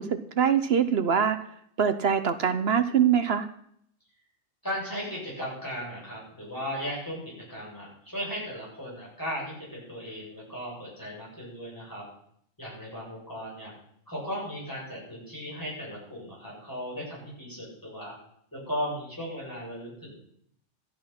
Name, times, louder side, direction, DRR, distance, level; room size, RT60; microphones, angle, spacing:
voice 1, 0.0-1.4 1.8-3.5, right 8 dB, 55° right, 11 dB, 1.0 m, -23 dB
voice 2, 4.6-12.0 12.6-13.7 14.1-18.2 18.5-20.1, equal, 15° left, -6 dB, 7.8 m, -36 dB
14.0 x 10.5 x 5.9 m, 0.69 s
omnidirectional pair, 1.3 m